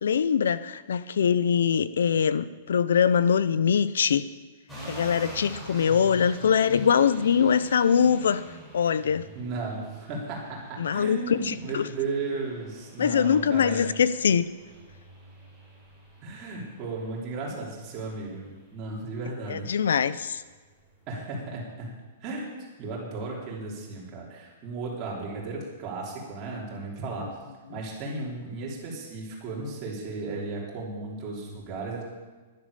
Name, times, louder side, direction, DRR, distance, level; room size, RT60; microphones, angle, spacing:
voice 1, 0.0-4.3 4.9-8.4 8.7-9.3 10.8-11.9 13.0-14.5 19.5-20.4, left 7 dB, 90° left, 16 dB, 0.6 m, -23 dB
sound 1, 4.7-21.2, right 1 dB, 5° left, 4.2 m, -46 dB
voice 2, 9.3-13.9 16.2-19.7 21.1-21.9 22.2-27.3 27.7-32.0, right 3 dB, 25° right, -4 dB, 3.4 m, -35 dB
11.0 x 10.5 x 6.8 m, 1.3 s
hypercardioid pair, 170°, 0 cm